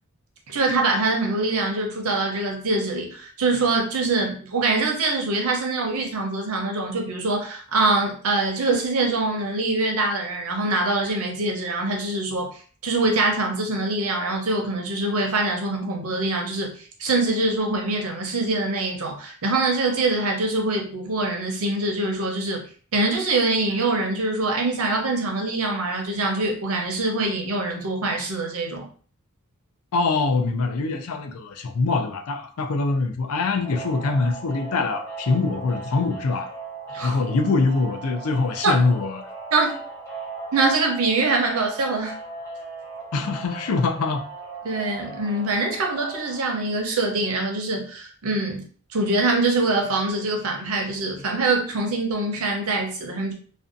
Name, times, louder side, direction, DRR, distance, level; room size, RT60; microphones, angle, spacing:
voice 1, 0.5-16.7 17.0-22.6 22.9-28.8 36.9-37.2 38.6-38.7 39.5-39.7 40.5-42.1 44.6-48.6 48.9-53.3, right 2 dB, 70° right, 0.6 m, -24 dB
voice 2, 29.9-36.5 37.0-39.2 43.1-44.2, left 3 dB, 75° left, 0.4 m, -23 dB
sound 1, 33.6-46.4, right 3 dB, 15° left, 0.8 m, -38 dB
2.6 x 2.2 x 2.5 m
head